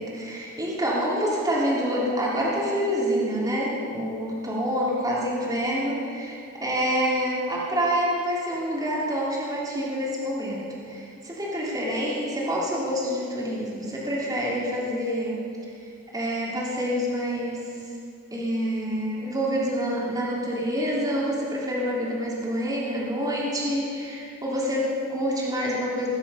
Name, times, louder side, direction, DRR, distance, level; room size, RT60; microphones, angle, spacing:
voice 1, 0.0-15.4 15.8-17.9 18.3-26.1, equal, 20° right, -6 dB, 3.0 m, -27 dB
20.5 x 9.7 x 5.6 m, 2.5 s
head